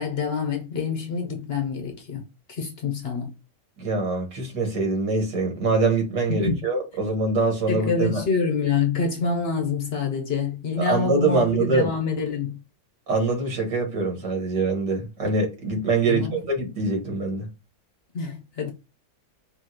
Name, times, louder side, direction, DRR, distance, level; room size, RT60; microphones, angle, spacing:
voice 1, 0.0-2.2 2.5-3.3 6.3-6.6 7.7-12.6 16.1-16.4 18.1-18.7, left 5 dB, 45° left, 0.9 m, -26 dB
voice 2, 3.8-8.2 10.9-11.9 13.1-17.5, right 3 dB, 85° right, 2.4 m, -24 dB
5.5 x 2.8 x 2.9 m
omnidirectional pair, 1.8 m